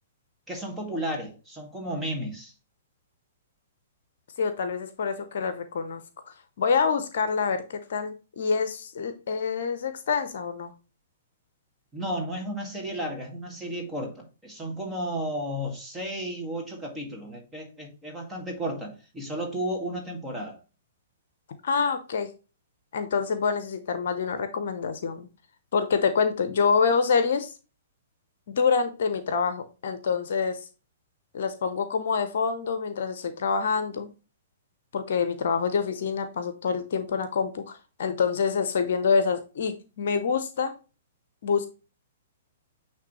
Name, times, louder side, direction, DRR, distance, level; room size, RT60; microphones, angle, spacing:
voice 1, 0.5-2.5 11.9-20.6, equal, 10° right, 2.0 m, -33 dB
voice 2, 4.4-6.0 6.6-10.7 21.6-22.3 22.9-25.3 25.7-27.5 28.5-30.6 31.3-34.1 34.9-40.7 41.4-41.7, left 5 dB, 55° left, 0.8 m, -26 dB
9.3 x 3.3 x 3.1 m
figure-of-eight pair, 110°, 0 cm